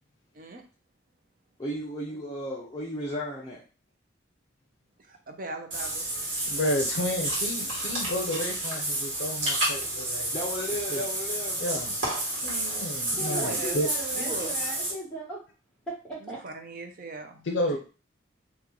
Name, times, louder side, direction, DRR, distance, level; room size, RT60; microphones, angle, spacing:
voice 1, 1.6-3.6 10.3-11.6, equal, 25° left, -5 dB, 0.7 m, -34 dB
voice 2, 5.1-6.1 13.3-13.8 14.2-14.5 16.2-17.5, right 3 dB, 45° right, 4 dB, 0.5 m, -39 dB
Water / Bathtub (filling or washing), 5.7-14.9, right 1 dB, 80° right, 1.5 m, -30 dB
voice 3, 6.5-10.4 10.9-11.0 11.6-11.9 12.4-13.9 17.4-17.8, left 1 dB, 75° left, 2 dB, 0.6 m, -31 dB
voice 4, 13.2-15.4 15.9-16.4, right 2 dB, 5° left, -6 dB, 1.4 m, -37 dB
2.9 x 2.4 x 3.7 m, 0.35 s
head